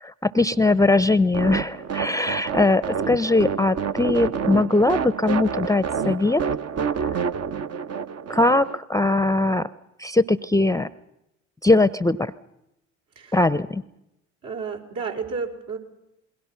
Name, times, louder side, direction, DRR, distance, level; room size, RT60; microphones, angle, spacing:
voice 1, 0.0-6.4 6.9-7.3 8.3-9.7 10.0-10.9 11.6-12.3 13.3-13.8, left 2 dB, 10° left, 17 dB, 0.7 m, -21 dB
sound 1, 1.3-8.8, right 7 dB, 40° right, 1.0 m, -28 dB
voice 2, 14.4-15.8, right 5 dB, 60° right, 1 dB, 4.3 m, -31 dB
28.0 x 21.5 x 5.9 m, 0.86 s
hypercardioid pair, 55°, 37 cm